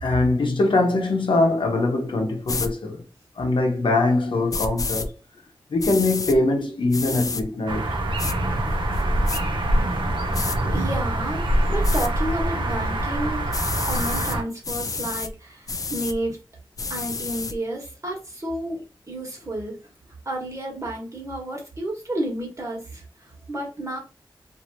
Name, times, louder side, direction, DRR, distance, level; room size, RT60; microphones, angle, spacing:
voice 1, 0.0-3.0 3.4-5.1 5.7-7.9, left 2 dB, 70° left, 0.8 m, -22 dB
sound 1, 2.5-2.7 4.5-5.1 5.8-6.4 6.9-7.4 8.2-8.4 8.9-9.4 10.3-10.6 11.8-12.1 13.5-14.4 14.6-15.3 15.7-16.2 16.8-17.5, left 4 dB, 45° left, 0.3 m, -29 dB
sound 2, 7.7-14.4, right 1 dB, 70° right, 0.7 m, -24 dB
voice 2, 10.7-13.5 13.8-16.4 16.9-19.8 20.2-24.0, right 1 dB, 35° right, 1.3 m, -31 dB
2.9 x 2.6 x 2.6 m
wide cardioid pair, 70°, 9 cm